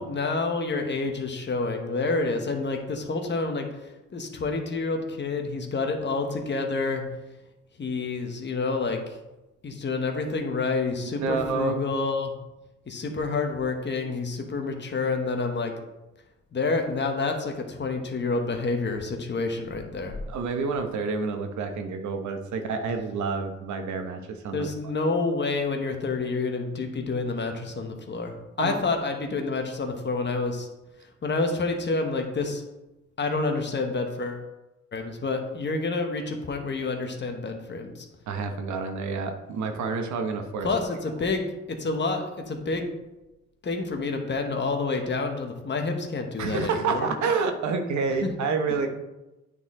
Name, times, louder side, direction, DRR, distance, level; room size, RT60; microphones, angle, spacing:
voice 1, 0.0-7.0 7.8-9.2 9.6-12.3 12.9-15.7 16.5-20.2 24.5-30.7 31.2-32.6 33.2-34.4 34.9-38.1 40.6-42.9 43.6-47.1 48.2-48.3, left 3 dB, 35° left, 4 dB, 1.1 m, -28 dB
voice 2, 11.2-11.8 20.3-24.7 28.6-28.8 38.3-40.7 46.4-48.9, right 4 dB, 70° right, 6 dB, 1.0 m, -28 dB
9.0 x 4.1 x 3.7 m, 1.0 s
cardioid pair, 90°, 30 cm